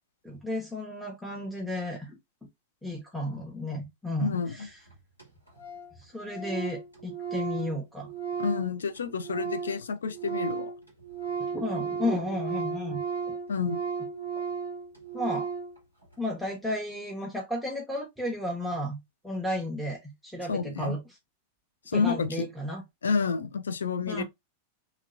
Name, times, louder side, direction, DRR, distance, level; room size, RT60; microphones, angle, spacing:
voice 1, 0.2-2.2 2.8-4.8 5.9-8.1 11.5-13.4 15.1-15.5 16.2-19.0 19.2-21.0 21.9-22.8 24.1-24.2, left 1 dB, ahead, 0.8 m, -33 dB
voice 2, 4.2-4.6 8.4-10.7 13.5-13.8 20.5-20.9 21.9-22.5 23.0-24.2, left 5 dB, 70° left, 0.4 m, -29 dB
Organ, 4.6-4.7 4.9-5.0 5.2-5.3 5.5-5.9 6.2-9.8 10.1-15.7, right 6 dB, 85° left, 1.8 m, -34 dB
2.9 x 2.8 x 2.5 m
figure-of-eight pair, 90°, 0 cm